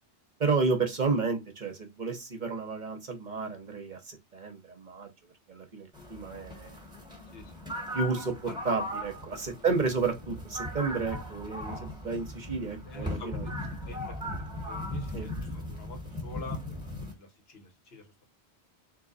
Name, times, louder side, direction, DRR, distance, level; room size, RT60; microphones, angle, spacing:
voice 1, 0.4-5.1 5.5-6.8 7.9-8.3 8.6-13.4 15.1-15.3, right 4 dB, 45° right, 1.0 m, -31 dB
sound 1, 5.9-17.1, left 1 dB, 5° right, 1.2 m, -38 dB
voice 2, 7.3-7.7 8.4-8.6 9.5-9.8 12.8-18.2, left 1 dB, 65° left, 1.3 m, -46 dB
3.8 x 2.7 x 3.8 m
omnidirectional pair, 1.1 m